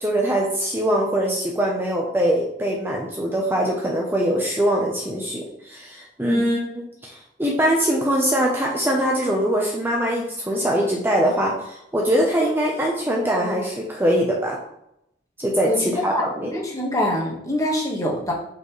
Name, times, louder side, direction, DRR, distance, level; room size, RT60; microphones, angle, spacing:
voice 1, 0.0-14.6 15.4-16.5, equal, 15° right, -2 dB, 0.9 m, -22 dB
voice 2, 16.5-18.3, left 1 dB, 20° left, -2 dB, 1.7 m, -24 dB
8.4 x 4.5 x 3.3 m, 0.81 s
head